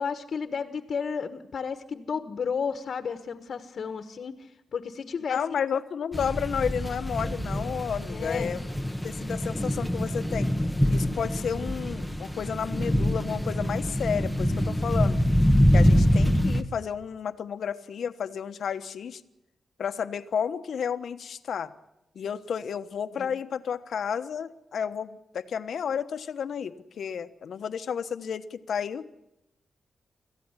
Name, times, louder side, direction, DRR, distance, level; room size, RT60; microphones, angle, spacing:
voice 1, 0.0-5.4 8.1-8.5 23.2-23.3, left 6 dB, 60° left, 9 dB, 1.4 m, -33 dB
voice 2, 5.3-8.6 9.0-10.5 10.9-15.2 15.7-19.2 19.8-21.7 22.1-29.1, left 7 dB, 75° left, 10 dB, 1.2 m, -32 dB
sound 1, 6.1-16.6, equal, ahead, 1.4 m, -25 dB
26.0 x 15.0 x 9.9 m, 0.86 s
wide cardioid pair, 125°, 0 cm